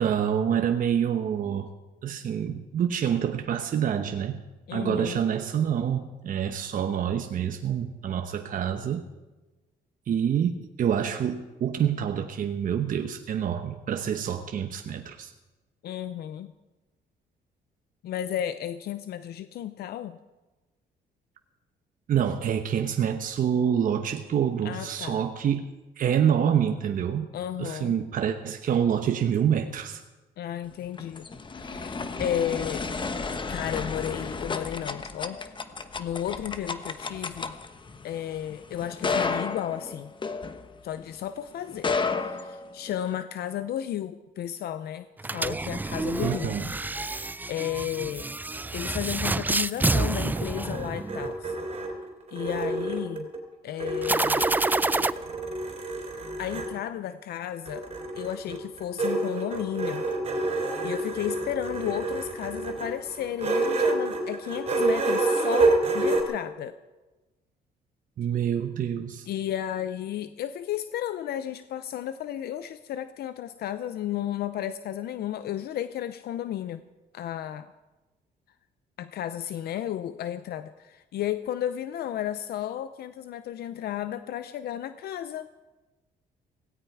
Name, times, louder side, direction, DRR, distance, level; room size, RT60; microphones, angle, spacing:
voice 1, 0.0-1.7 2.0-4.4 4.7-9.1 10.1-15.3 22.1-25.6 26.0-27.3 27.6-30.0 46.2-46.7 68.2-69.3, right 8 dB, 55° right, 6 dB, 1.0 m, -27 dB
voice 2, 4.7-5.2 15.8-16.5 18.0-20.2 24.6-25.2 27.3-28.0 30.4-31.3 31.5-32.9 33.5-35.4 36.0-37.5 38.0-40.1 40.8-41.9 42.2-46.5 46.9-48.3 48.7-51.6 52.3-53.3 53.6-54.6 56.4-57.9 58.1-60.1 60.8-66.8 69.3-76.8 77.1-77.7 79.0-85.5, left 11 dB, 75° left, 12 dB, 0.6 m, -33 dB
sound 1, 30.7-41.1 41.7-43.2, left 4 dB, 30° left, 1.1 m, -32 dB
sound 2, 45.2-51.4 54.0-55.1, right 2 dB, 10° right, 0.4 m, -28 dB
sound 3, 50.1-53.4 53.8-56.7 57.7-66.2, right 2 dB, 40° right, 3.6 m, -28 dB
17.0 x 17.0 x 4.8 m, 1.1 s
cardioid pair, 105°, 17 cm